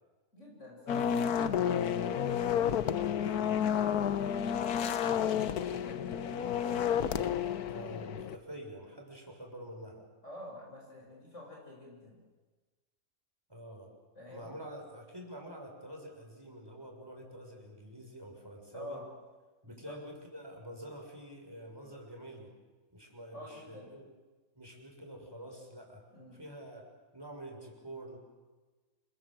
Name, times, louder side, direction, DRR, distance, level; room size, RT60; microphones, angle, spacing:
voice 1, 0.3-2.8 3.1-4.1 4.7-7.2 10.2-12.2 14.2-14.5 18.7-19.1 19.6-20.0 23.3-23.9 26.1-26.4, left 1 dB, 50° left, -2 dB, 7.1 m, -49 dB
sound 1, 0.9-8.4, left 8 dB, 80° left, 1.5 m, -31 dB
voice 2, 7.7-10.1 13.5-13.9 14.3-19.0 19.6-22.5 22.9-24.0 24.6-26.0 26.3-26.9 27.1-28.2, right 1 dB, 15° right, 1 dB, 6.0 m, -47 dB
28.0 x 23.0 x 7.6 m, 1.3 s
omnidirectional pair, 1.6 m